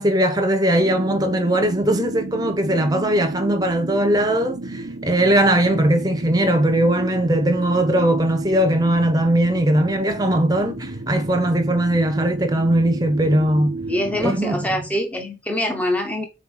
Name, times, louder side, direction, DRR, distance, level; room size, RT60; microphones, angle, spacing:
voice 1, 0.0-13.8 14.2-14.7, right 1 dB, 20° right, 1.1 m, -19 dB
sound 1, 0.8-14.4, right 2 dB, 60° right, 1.0 m, -32 dB
voice 2, 13.9-16.2, left 1 dB, 10° left, 1.3 m, -24 dB
5.9 x 4.6 x 6.3 m
head